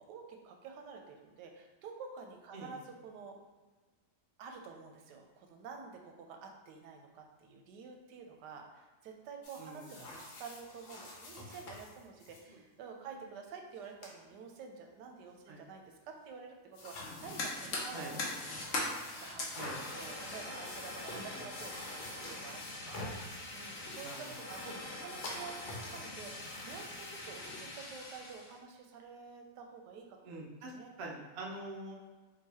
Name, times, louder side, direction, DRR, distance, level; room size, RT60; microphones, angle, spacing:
voice 1, 0.0-3.4 4.4-18.4 18.8-24.6 25.0-30.9, right 5 dB, 90° right, 2 dB, 1.2 m, -50 dB
sound 1, 9.4-12.4 13.7-13.8 14.0-14.2 16.7-27.5, left 2 dB, 80° left, 1.3 m, -48 dB
voice 2, 9.6-10.0 12.5-12.6 15.5-15.6 17.9-18.1 19.5-19.8 21.3-21.4 24.0-24.4 24.6-24.8 30.2-30.7 31.0-31.9, right 2 dB, 70° right, -1 dB, 0.5 m, -45 dB
Fire, 17.0-28.6, left 2 dB, 55° left, 0.7 m, -42 dB
3.8 x 2.7 x 2.8 m, 1.3 s
omnidirectional pair, 1.8 m